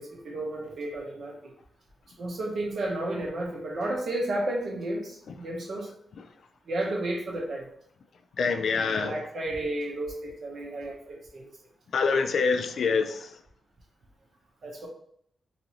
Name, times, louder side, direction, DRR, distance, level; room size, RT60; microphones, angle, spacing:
voice 1, 0.0-1.5 2.1-5.9 6.6-7.7 8.8-11.5 14.6-14.9, right 1 dB, 55° right, 0 dB, 0.8 m, -32 dB
voice 2, 8.4-9.2 11.9-13.4, left 5 dB, 60° left, 6 dB, 0.3 m, -25 dB
2.8 x 2.6 x 3.0 m, 0.66 s
wide cardioid pair, 145°, 0 cm